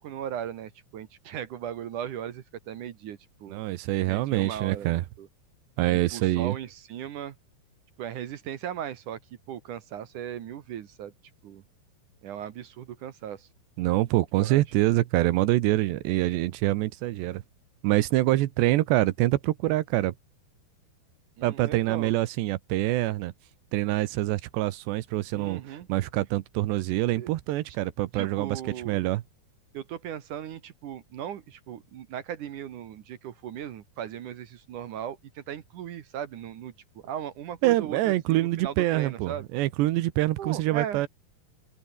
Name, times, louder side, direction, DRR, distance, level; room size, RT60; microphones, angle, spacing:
voice 1, 0.0-3.6 4.1-5.3 5.9-7.4 8.0-9.2 9.5-11.1 11.4-11.6 12.2-13.5 14.3-14.6 21.4-22.1 25.3-25.9 27.1-27.3 28.1-29.0 29.7-36.7 37.0-39.4 40.4-41.0, right 10 dB, 60° right, 2.4 m, -37 dB
voice 2, 3.5-5.0 5.8-6.6 13.8-17.4 17.8-20.1 21.4-23.3 23.7-28.6 28.9-29.2 37.6-41.1, right 16 dB, 85° right, 3.2 m, -25 dB
open air
omnidirectional pair, 4.9 m